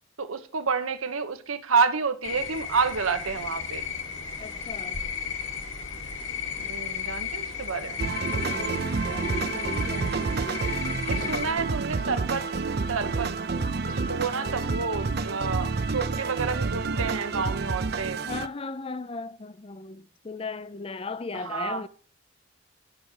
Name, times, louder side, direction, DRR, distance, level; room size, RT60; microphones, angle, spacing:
voice 1, 0.2-3.9 6.6-8.0 11.0-12.5 12.9-13.3 13.8-18.2 21.3-21.8, right 5 dB, 85° right, 1.1 m, -29 dB
sound 1, 2.2-11.5, left 6 dB, 65° left, 1.9 m, -34 dB
voice 2, 4.4-5.0 8.3-10.8 11.1-11.6 18.2-21.9, left 3 dB, 25° left, 0.4 m, -37 dB
sound 2, 8.0-18.5, right 4 dB, 50° right, 0.6 m, -29 dB
11.5 x 6.0 x 4.8 m
head